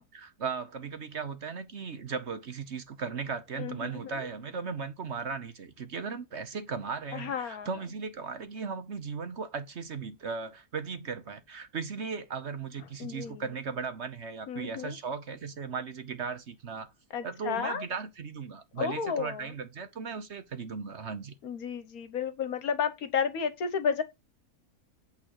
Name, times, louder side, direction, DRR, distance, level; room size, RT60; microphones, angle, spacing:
voice 1, 0.0-16.9 17.2-21.3, right 5 dB, 50° right, 1.1 m, -37 dB
voice 2, 3.6-4.2 7.1-7.7 13.0-13.4 14.5-14.9 17.1-17.8 18.8-19.4 21.4-24.0, left 7 dB, 70° left, 1.5 m, -32 dB
8.7 x 3.8 x 6.4 m
omnidirectional pair, 1.6 m